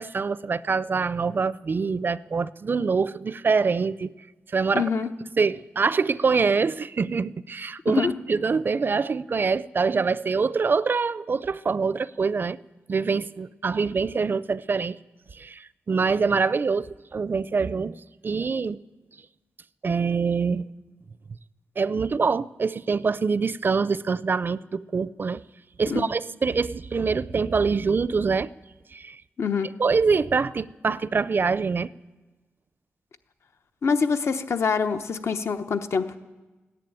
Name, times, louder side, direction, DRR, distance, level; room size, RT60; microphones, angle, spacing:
voice 1, 0.0-4.1 4.5-4.9 5.4-12.6 12.9-15.0 15.3-18.0 18.2-18.8 19.8-20.6 21.8-25.4 25.8-28.5 28.9-29.2 29.8-31.9, right 5 dB, 45° right, 0.4 m, -25 dB
voice 2, 4.7-5.1 7.9-8.1 25.9-26.0 29.4-29.7 33.8-36.2, left 5 dB, 70° left, 0.9 m, -25 dB
14.5 x 10.5 x 9.0 m
cardioid pair, 65°, 5 cm